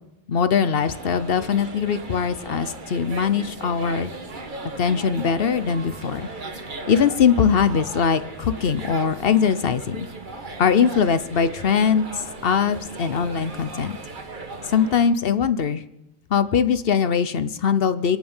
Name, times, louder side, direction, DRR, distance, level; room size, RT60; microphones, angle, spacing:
voice 1, 0.3-4.1 4.8-6.3 6.9-10.1 10.6-14.0 14.7-15.8 16.3-18.2, left 7 dB, 70° left, 12 dB, 1.0 m, -21 dB
sound 1, 0.7-15.1, right 3 dB, 55° right, 1.4 m, -37 dB
26.5 x 9.2 x 5.5 m, 0.88 s
omnidirectional pair, 1.0 m